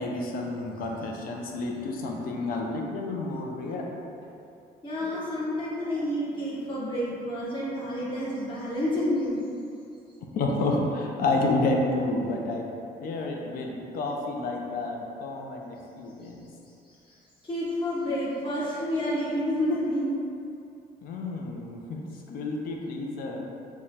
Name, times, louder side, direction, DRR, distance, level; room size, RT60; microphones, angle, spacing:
voice 1, 0.0-3.9 10.3-12.7 13.0-16.4 21.0-23.5, left 2 dB, 65° left, 0 dB, 0.5 m, -30 dB
voice 2, 4.8-9.4 16.2-16.3 16.9-17.2 17.4-20.2, equal, 30° left, -8 dB, 0.9 m, -29 dB
4.7 x 2.2 x 2.8 m, 2.6 s
cardioid pair, 175°, 16 cm